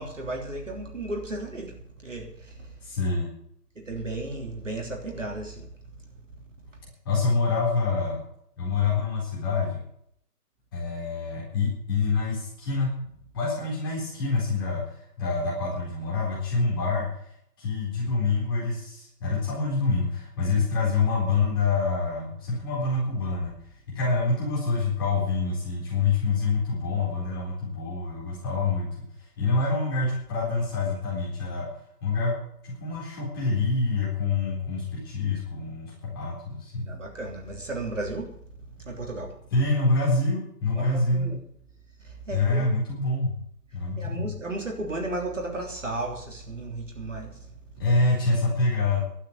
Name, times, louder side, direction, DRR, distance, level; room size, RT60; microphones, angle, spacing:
voice 1, 0.0-2.7 3.7-5.7 24.1-24.2 36.9-38.3 38.8-39.3 40.8-41.4 42.0-42.6 44.0-47.5, right 2 dB, 50° right, 1 dB, 3.3 m, -34 dB
voice 2, 2.8-3.3 7.0-8.2 8.6-9.8 10.7-12.9 13.3-17.3 17.6-23.5 23.9-29.1 29.4-31.7 32.0-36.9 39.5-41.3 42.3-43.3 43.7-44.2 47.8-49.0, left 3 dB, 15° left, -6 dB, 4.0 m, -26 dB
12.0 x 9.4 x 8.1 m, 0.67 s
figure-of-eight pair, 160°, 48 cm